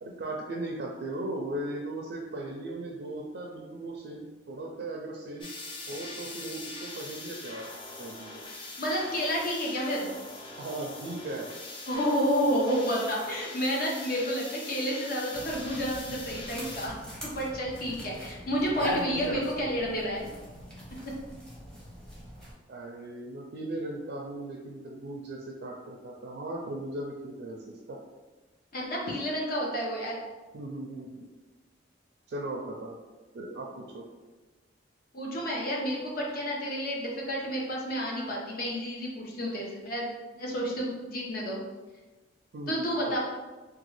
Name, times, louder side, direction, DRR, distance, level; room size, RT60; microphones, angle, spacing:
voice 1, 0.0-5.5 5.9-7.7 8.0-8.4 10.6-11.5 18.7-19.5 22.7-28.0 30.5-31.3 32.3-33.0 33.3-34.0 42.5-43.2, right 2 dB, 60° right, -1 dB, 0.4 m, -37 dB
sound 1, 5.4-16.9, left 2 dB, 30° left, 0.4 m, -42 dB
voice 2, 8.8-10.1 11.9-16.9 17.2-20.3 28.7-30.2 35.1-40.1 40.4-41.6 42.7-43.2, equal, 50° left, -2 dB, 0.8 m, -30 dB
sound 2, 15.3-22.5, equal, 5° left, 0.8 m, -42 dB
3.0 x 2.3 x 3.0 m, 1.2 s
head